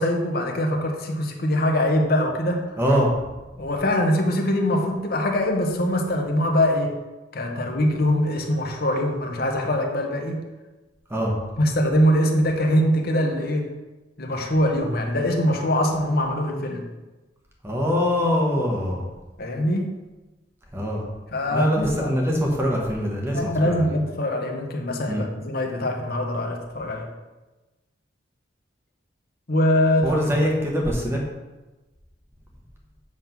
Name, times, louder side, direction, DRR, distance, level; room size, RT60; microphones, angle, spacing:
voice 1, 0.0-2.7 3.6-7.0 7.3-10.4 11.6-13.7 14.2-16.8 19.4-20.0 21.3-22.1 23.3-27.1 29.5-30.2, left 1 dB, 55° left, 2 dB, 1.1 m, -23 dB
voice 2, 2.8-3.1 11.1-11.3 17.6-19.0 20.7-21.0 21.5-23.8 25.1-25.3 30.0-31.2, equal, 15° right, -2 dB, 1.4 m, -23 dB
7.8 x 3.7 x 5.9 m, 1.1 s
head